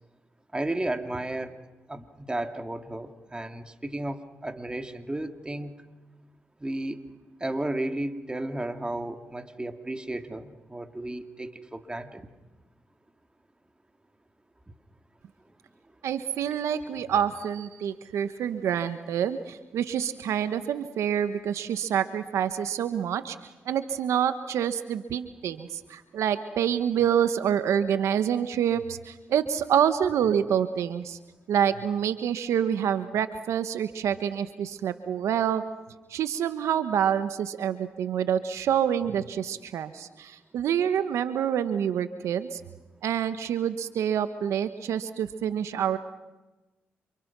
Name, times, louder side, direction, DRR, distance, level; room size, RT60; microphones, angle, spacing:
voice 1, 0.5-1.6 1.9-5.7 6.6-7.0 7.4-12.3, right 1 dB, 20° right, 6 dB, 2.7 m, -33 dB
voice 2, 16.0-23.4 23.6-31.2 31.5-35.6 36.1-42.6 43.0-46.0, right 9 dB, 80° right, 11 dB, 1.1 m, -27 dB
29.5 x 28.0 x 6.1 m, 1.1 s
supercardioid pair, 50°, 5 cm